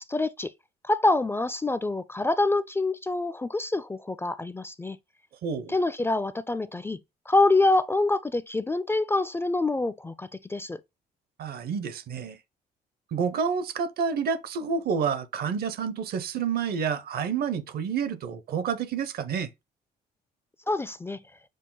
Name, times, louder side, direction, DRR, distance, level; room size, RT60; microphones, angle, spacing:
voice 1, 0.1-0.5 0.8-5.0 5.7-7.0 7.3-10.8 20.7-21.2, left 2 dB, 15° left, 0.3 m, -26 dB
voice 2, 5.4-5.7 11.4-12.4 13.1-19.5, right 6 dB, 65° right, 0.8 m, -29 dB
6.4 x 2.1 x 3.8 m
cardioid pair, 85°, 17 cm